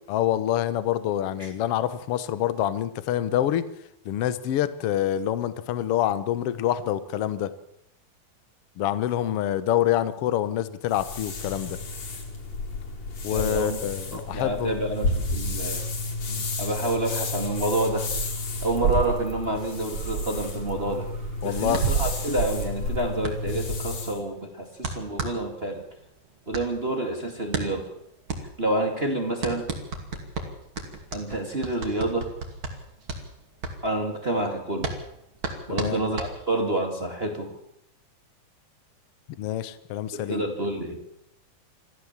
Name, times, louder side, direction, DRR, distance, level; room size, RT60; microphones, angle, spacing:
voice 1, 0.1-3.6 4.0-7.5 8.8-11.8 13.2-14.8 16.3-16.4 21.4-22.1 35.7-36.0 39.4-40.4, left 12 dB, 80° left, 14 dB, 1.3 m, -26 dB
sound 1, 10.9-24.2, left 2 dB, 50° left, 4.3 m, -32 dB
voice 2, 13.3-13.8 14.1-15.8 16.6-18.1 18.6-21.1 21.4-25.8 26.4-27.9 28.6-29.7 31.1-32.3 33.8-34.9 35.7-37.5 40.1-41.0, right 1 dB, 20° right, 3 dB, 1.8 m, -28 dB
sound 2, 18.0-18.3 18.6-23.2, right 8 dB, 80° right, 1.2 m, -29 dB
sound 3, 21.7-36.8, right 3 dB, 35° right, 3.0 m, -35 dB
25.5 x 15.0 x 7.4 m, 0.77 s
omnidirectional pair, 4.2 m